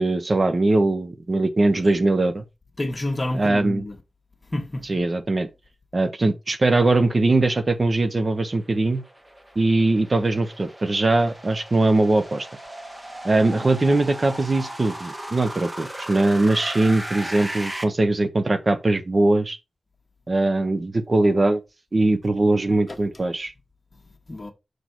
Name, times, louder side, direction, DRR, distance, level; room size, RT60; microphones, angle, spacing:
voice 1, 0.0-2.4 3.3-3.8 4.9-5.5 5.9-9.0 9.6-12.5 13.2-19.6 20.3-21.6 21.9-23.5, right 2 dB, 40° right, 0.8 m, -21 dB
voice 2, 2.8-4.0 4.5-4.8 22.9-23.0 24.3-24.5, left 1 dB, 30° left, 1.4 m, -28 dB
sound 1, 8.3-17.8, right 1 dB, 20° right, 1.2 m, -37 dB
6.7 x 4.2 x 4.4 m
wide cardioid pair, 120°, 0 cm